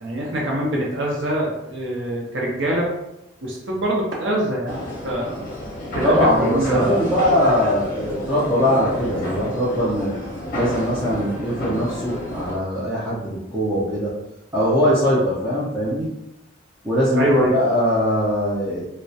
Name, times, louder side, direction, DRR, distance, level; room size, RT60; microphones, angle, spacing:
voice 1, 0.0-2.9 3.4-5.4 5.9-7.3 17.2-17.5, right 1 dB, 60° right, -3 dB, 0.5 m, -24 dB
sound 1, 4.7-12.5, equal, 40° left, 0.6 m, -30 dB
voice 2, 6.0-10.1 10.5-14.1 14.5-16.1 16.8-18.9, equal, 10° right, -9 dB, 0.4 m, -21 dB
2.2 x 2.0 x 2.6 m, 0.85 s
head